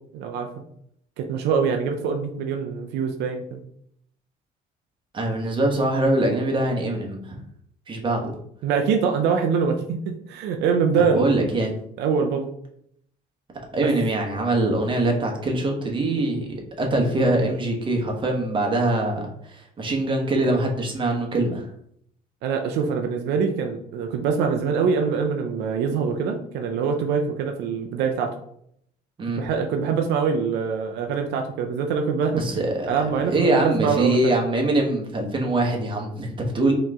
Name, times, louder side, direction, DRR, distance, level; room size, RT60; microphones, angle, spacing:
voice 1, 0.1-0.5 1.2-3.6 8.6-11.3 12.0-12.5 13.8-13.9 22.4-28.3 29.4-32.4 32.9-34.3, right 6 dB, 85° right, 4 dB, 0.6 m, -24 dB
voice 2, 5.1-7.4 7.9-8.3 11.0-11.7 13.7-16.5 16.8-21.6 29.2-29.4 32.3-36.7, right 2 dB, 30° right, 1 dB, 1.2 m, -23 dB
4.6 x 3.1 x 3.6 m, 0.69 s
cardioid pair, 110°, 17 cm